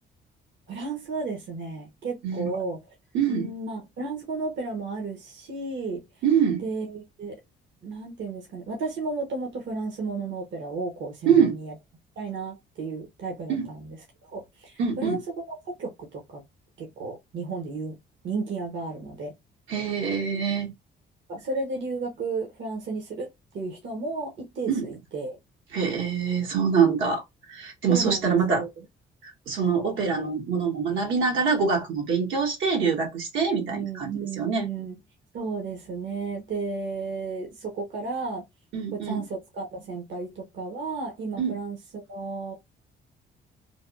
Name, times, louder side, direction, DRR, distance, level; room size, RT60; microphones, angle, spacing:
voice 1, 0.7-2.8 3.3-6.0 6.6-7.4 7.8-11.7 12.2-14.0 14.2-15.2 15.5-16.4 16.8-18.0 18.2-19.3 21.3-23.3 23.5-25.4 27.9-28.8 33.7-34.9 35.3-38.4 38.9-42.5, right 3 dB, 70° right, 1.0 m, -33 dB
voice 2, 2.2-2.6 3.1-3.5 6.2-6.6 11.3-11.6 13.5-13.7 14.8-15.2 19.7-20.7 24.7-24.9 25.7-27.2 27.5-28.6 29.2-34.7 38.7-39.2 41.4-41.6, right 6 dB, 90° right, 1.3 m, -24 dB
3.4 x 2.2 x 2.4 m
cardioid pair, 90°, 20 cm